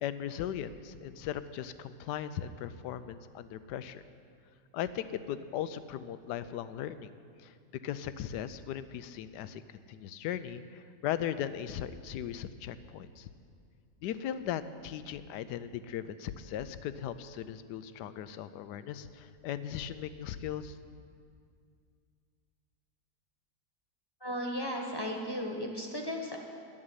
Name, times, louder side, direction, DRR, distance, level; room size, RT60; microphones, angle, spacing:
voice 1, 0.0-4.0 4.7-7.1 7.4-7.5 7.8-9.6 9.9-13.3 14.0-20.8, left 10 dB, 80° left, 13 dB, 1.2 m, -38 dB
voice 2, 24.2-26.4, equal, 15° left, 0 dB, 1.2 m, -35 dB
11.0 x 7.7 x 9.7 m, 2.3 s
omnidirectional pair, 1.8 m